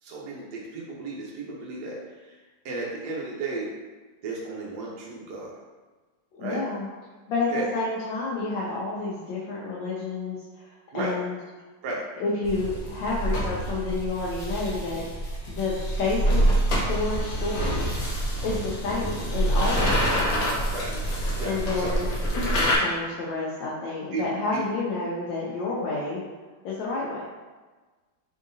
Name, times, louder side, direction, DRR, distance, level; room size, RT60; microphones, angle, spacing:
voice 1, 0.0-2.4 2.6-3.7 4.2-5.6 6.4-6.6 7.5-7.7 10.9-11.1 11.8-12.0 20.7-21.9 22.7-22.8 24.1-24.2 24.5-24.6, right 3 dB, 65° right, -4 dB, 1.2 m, -34 dB
voice 2, 6.3-6.9 7.3-11.4 12.2-15.0 15.5-16.5 16.8-17.9 18.4-20.2 21.4-26.2 26.6-27.3, left 3 dB, 80° left, -5 dB, 1.4 m, -30 dB
sound 1, 12.4-22.8, right 1 dB, 60° left, 1.0 m, -26 dB
3.7 x 3.7 x 2.6 m, 1.3 s
omnidirectional pair, 2.0 m